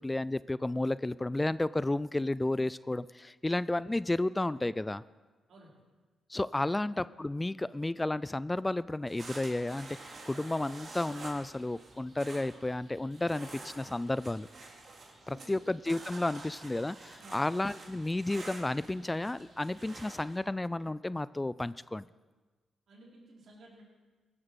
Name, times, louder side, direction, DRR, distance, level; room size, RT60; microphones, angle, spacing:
voice 1, 0.0-5.0 6.3-14.5 15.3-22.0, left 2 dB, 15° left, 18 dB, 0.3 m, -32 dB
sound 1, 9.1-20.4, right 3 dB, 55° right, 3.2 m, -49 dB
voice 2, 15.1-15.6 17.2-17.5 22.9-23.8, right 1 dB, 70° right, -3 dB, 4.4 m, -55 dB
17.0 x 8.8 x 6.3 m, 1.3 s
cardioid pair, 65°, 0 cm